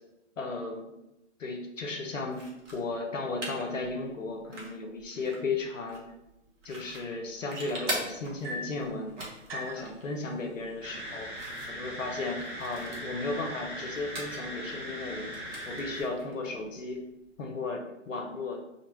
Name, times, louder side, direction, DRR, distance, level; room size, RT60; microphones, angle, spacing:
voice 1, 0.4-0.9 1.4-2.5 2.7-6.0 6.6-9.2 9.5-11.3 11.7-15.3 15.7-17.0 17.4-18.6, left 3 dB, 85° left, 2 dB, 0.6 m, -35 dB
sound 1, 2.3-17.4, right 1 dB, 70° right, 0.9 m, -44 dB
sound 2, 7.9-8.9 9.5-9.9 10.9-11.0 11.4-11.8 12.5-12.6, left 1 dB, 50° right, 0.5 m, -40 dB
sound 3, 10.8-16.0, equal, 10° right, 0.6 m, -40 dB
2.6 x 2.2 x 3.0 m, 0.92 s
figure-of-eight pair, 120°, 37 cm